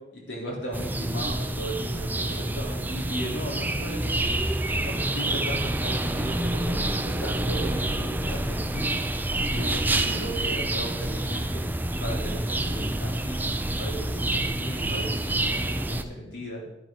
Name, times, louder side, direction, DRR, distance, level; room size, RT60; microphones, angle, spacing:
voice 1, 0.1-4.4 4.8-8.9 9.3-11.7 12.0-13.4 13.8-16.6, equal, 85° left, -3 dB, 3.8 m, -36 dB
sound 1, 0.7-16.0, right 1 dB, 10° right, 0.5 m, -28 dB
11.0 x 11.0 x 4.0 m, 0.94 s
head